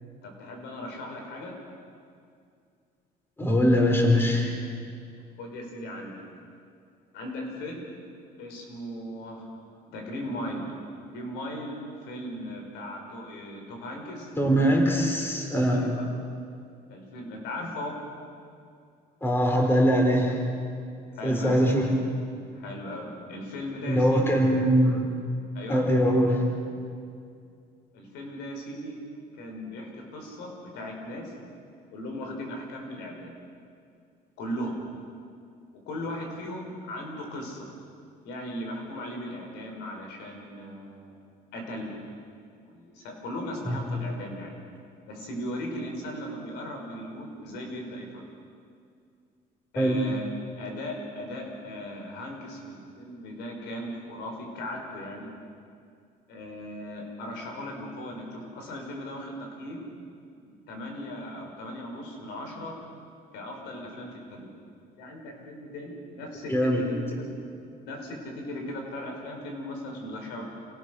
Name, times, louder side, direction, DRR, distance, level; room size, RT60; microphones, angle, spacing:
voice 1, 0.2-1.6 5.4-6.2 7.1-7.9 8.4-9.5 9.9-10.7 11.1-11.8 12.1-14.3 15.6-16.1 16.9-18.0 21.1-21.7 22.5-24.4 25.5-25.9 27.9-29.0 29.4-31.3 31.9-33.4 34.4-34.8 35.9-37.7 38.2-41.2 41.5-41.9 42.7-44.5 45.1-48.2 49.7-50.2 50.6-55.3 56.3-59.9 60.4-62.7 63.3-64.5 65.0-67.3 67.6-70.5, left 1 dB, 90° left, 2 dB, 5.3 m, -37 dB
voice 2, 3.4-4.5 14.4-15.8 19.2-20.3 21.2-21.9 23.9-25.0 25.7-26.4 43.7-43.8 49.8-50.0 66.5-66.8, equal, 15° left, 1 dB, 4.4 m, -22 dB
28.5 x 18.0 x 6.5 m, 2.3 s
cardioid pair, 110°, 17 cm